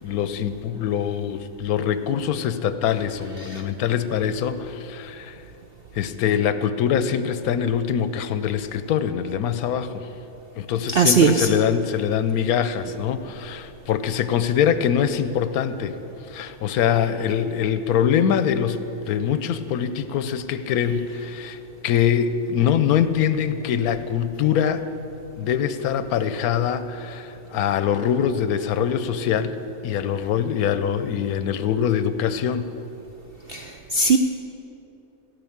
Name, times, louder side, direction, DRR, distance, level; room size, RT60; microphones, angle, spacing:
voice 1, 0.0-5.4 5.9-10.1 10.5-16.0 16.3-24.8 25.4-29.6 29.8-32.7, left 8 dB, 85° left, 12 dB, 1.1 m, -23 dB
voice 2, 10.9-11.5 33.5-34.2, right 4 dB, 65° right, 5 dB, 0.5 m, -19 dB
16.5 x 5.6 x 8.6 m, 2.9 s
omnidirectional pair, 1.6 m